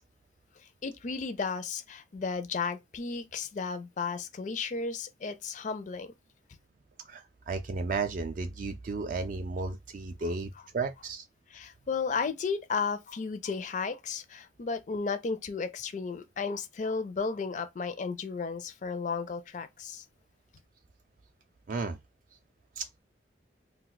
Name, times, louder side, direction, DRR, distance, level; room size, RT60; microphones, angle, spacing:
voice 1, 0.8-6.1 10.2-10.3 11.5-20.0, left 5 dB, 45° left, 0.4 m, -34 dB
voice 2, 7.1-11.2 21.7-22.0 22.8-23.0, right 4 dB, 50° right, 0.3 m, -34 dB
2.4 x 2.2 x 3.9 m
head